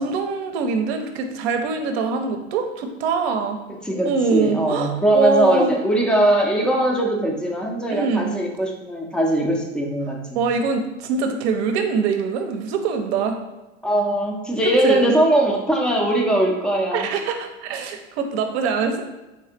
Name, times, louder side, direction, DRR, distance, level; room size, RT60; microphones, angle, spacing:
voice 1, 0.0-3.6 4.0-5.8 7.9-8.3 10.3-13.4 14.8-15.2 16.9-19.0, right 5 dB, 60° right, 6 dB, 0.7 m, -23 dB
voice 2, 3.8-10.4 13.8-17.1, right 1 dB, ahead, 0 dB, 0.5 m, -20 dB
3.6 x 3.2 x 2.8 m, 1.1 s
hypercardioid pair, 90°, 37 cm